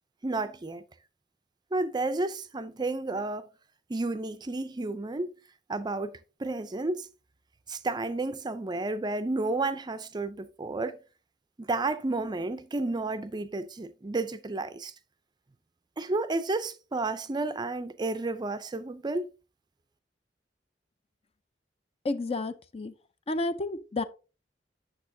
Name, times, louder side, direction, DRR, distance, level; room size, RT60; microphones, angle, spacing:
voice 1, 0.2-0.8 1.7-3.5 3.9-5.3 5.7-7.1 7.7-11.0 11.6-14.9 16.0-19.3, right 2 dB, 25° right, 0.4 m, -31 dB
voice 2, 22.0-22.9 23.3-24.0, left 2 dB, 35° left, 0.5 m, -31 dB
8.4 x 6.7 x 2.7 m
head